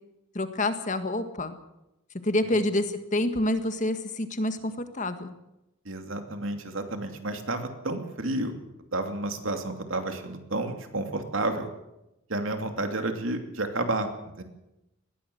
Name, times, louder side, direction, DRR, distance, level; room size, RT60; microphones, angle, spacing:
voice 1, 0.3-1.5 2.2-5.3, left 1 dB, 35° left, 9 dB, 1.6 m, -27 dB
voice 2, 5.8-8.6 8.9-11.7 12.3-14.4, right 2 dB, 70° right, 6 dB, 2.8 m, -31 dB
20.5 x 16.0 x 7.9 m, 0.92 s
head